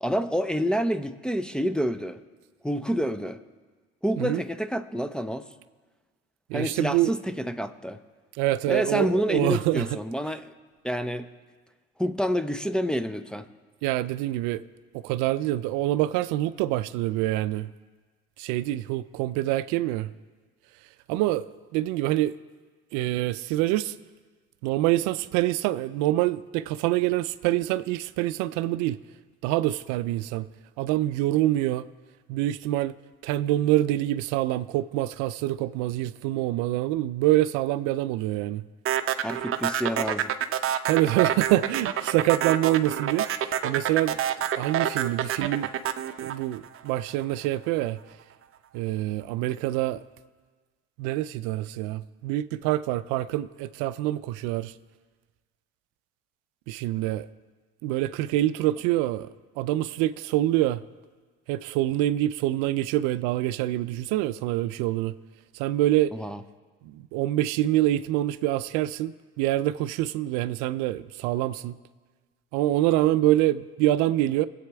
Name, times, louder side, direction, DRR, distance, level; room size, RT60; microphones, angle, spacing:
voice 1, 0.0-2.2 2.6-3.4 4.0-5.5 6.5-8.0 8.7-10.5 10.8-11.3 12.0-13.5 39.2-40.3 66.1-66.4, equal, 5° left, 7 dB, 0.6 m, -28 dB
voice 2, 6.5-7.1 8.4-9.9 13.8-14.6 14.9-17.7 18.4-20.1 21.1-22.4 22.9-24.0 24.6-29.0 29.4-30.5 30.8-31.9 32.3-32.9 33.2-38.6 40.8-44.2 44.6-45.7 46.2-48.0 48.7-50.0 51.0-54.7 56.7-57.3 57.8-59.3 59.6-60.8 61.5-65.1 65.5-66.1 66.8-71.8 72.5-74.5, right 15 dB, 80° right, 15 dB, 0.5 m, -26 dB
sound 1, 38.9-47.2, right 10 dB, 45° right, 0.7 m, -27 dB
22.0 x 8.4 x 3.5 m, 1.4 s
supercardioid pair, 75°, 30 cm